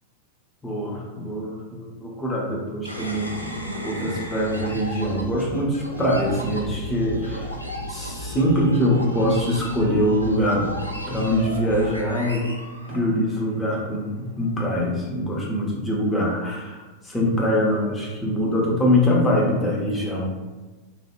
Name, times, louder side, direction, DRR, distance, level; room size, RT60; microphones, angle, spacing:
voice 1, 0.6-3.5 3.8-7.5 7.9-10.7 11.1-12.5 12.9-20.3, equal, 10° left, -4 dB, 0.7 m, -23 dB
sound 1, 2.9-13.5, equal, 90° right, 0.3 m, -34 dB
2.8 x 2.4 x 2.4 m, 1.2 s
figure-of-eight pair, 90°, 0 cm